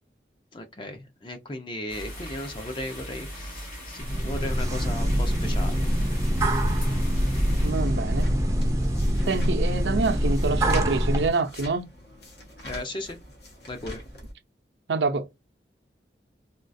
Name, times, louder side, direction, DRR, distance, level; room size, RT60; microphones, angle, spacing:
voice 1, 0.5-6.0 12.7-13.2 13.7-14.0, left 1 dB, 30° left, 0.6 m, -36 dB
sound 1, 1.9-7.7, equal, 50° left, 1.9 m, -38 dB
sound 2, 4.0-11.3, equal, 20° right, 0.5 m, -24 dB
sound 3, 6.3-14.3, equal, 70° left, 1.4 m, -45 dB
voice 2, 7.6-8.3 9.3-11.8 14.9-15.3, right 3 dB, 85° right, 0.6 m, -26 dB
3.6 x 2.4 x 2.6 m
head